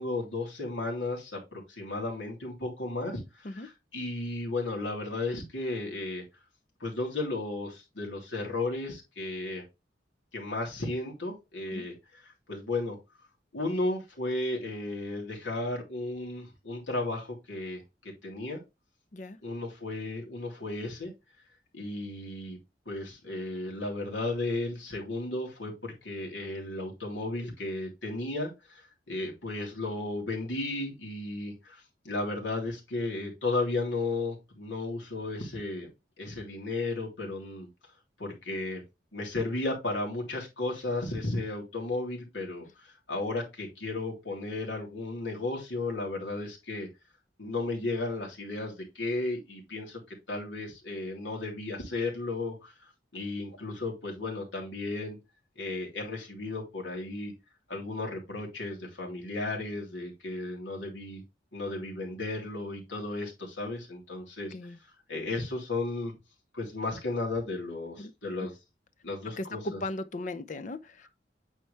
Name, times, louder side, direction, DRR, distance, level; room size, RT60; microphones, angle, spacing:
voice 1, 0.0-6.2 6.8-9.6 10.3-13.0 13.5-18.6 19.4-21.1 21.7-22.6 22.8-35.9 36.2-37.7 38.2-38.8 39.1-46.9 47.4-50.0 50.3-52.7 53.1-55.2 55.6-57.3 57.7-61.2 61.5-64.5 65.1-66.1 66.5-68.5 69.0-69.8, left 2 dB, 80° left, 3.2 m, -34 dB
voice 2, 69.4-71.1, left 2 dB, 40° left, 0.6 m, -37 dB
9.2 x 4.6 x 3.3 m
head